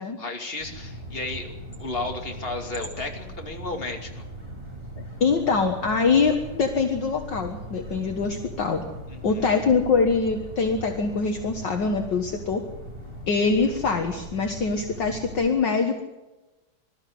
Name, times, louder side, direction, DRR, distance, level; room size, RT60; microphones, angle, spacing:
voice 1, 0.0-1.5 1.8-4.2 9.1-9.5, left 2 dB, 25° left, 3 dB, 2.9 m, -33 dB
sound 1, 0.6-15.5, right 1 dB, 25° right, 6.1 m, -40 dB
voice 2, 5.2-8.9 9.2-12.6 13.3-16.0, left 4 dB, 55° left, 4 dB, 2.1 m, -24 dB
21.5 x 13.5 x 9.5 m, 1.1 s
omnidirectional pair, 2.4 m